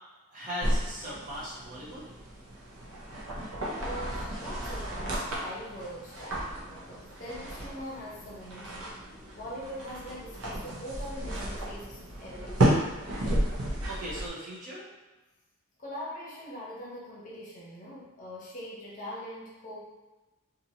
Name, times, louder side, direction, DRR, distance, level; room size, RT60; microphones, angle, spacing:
voice 1, 0.3-2.0 13.9-14.9, equal, 35° right, -6 dB, 0.8 m, -38 dB
sound 1, 0.6-14.3, right 1 dB, 80° right, 0.6 m, -33 dB
voice 2, 3.8-8.9 9.3-12.9 15.8-19.8, equal, 35° left, -6 dB, 0.8 m, -42 dB
2.8 x 2.5 x 2.7 m, 1.1 s
head